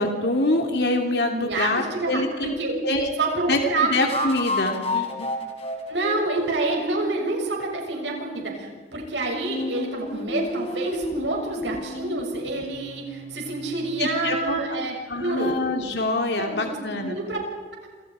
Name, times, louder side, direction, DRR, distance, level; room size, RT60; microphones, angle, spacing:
voice 1, 0.0-2.5 2.8-3.1 3.5-5.3 14.0-14.6 15.1-17.2, left 2 dB, 65° left, 3 dB, 2.8 m, -25 dB
voice 2, 1.3-2.8 3.2-3.9 5.9-15.5 16.4-16.8 17.0-17.4, right 2 dB, 80° right, 0 dB, 7.0 m, -28 dB
sound 1, 1.7-1.8 4.0-7.4 9.4-14.2, left 2 dB, 35° left, 3.9 m, -32 dB
28.0 x 27.5 x 5.0 m, 1.4 s
head